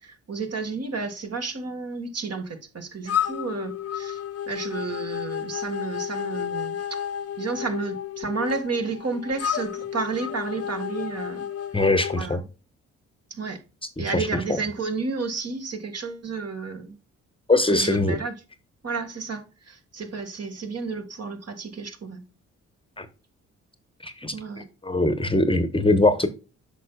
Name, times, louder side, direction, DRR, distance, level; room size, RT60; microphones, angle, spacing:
voice 1, 0.0-7.1 7.4-11.5 12.1-12.4 13.3-13.6 14.0-17.0 17.7-18.4 18.8-22.2 24.3-24.6, right 4 dB, 50° right, 1.8 m, -31 dB
sound 1, 3.1-12.2, left 9 dB, 45° left, 0.7 m, -31 dB
voice 2, 11.7-12.4 14.1-14.3 17.5-18.2 23.0-23.1 24.0-24.3 24.8-26.3, left 2 dB, 15° left, 0.9 m, -21 dB
8.2 x 5.8 x 2.3 m
supercardioid pair, 50°, 33 cm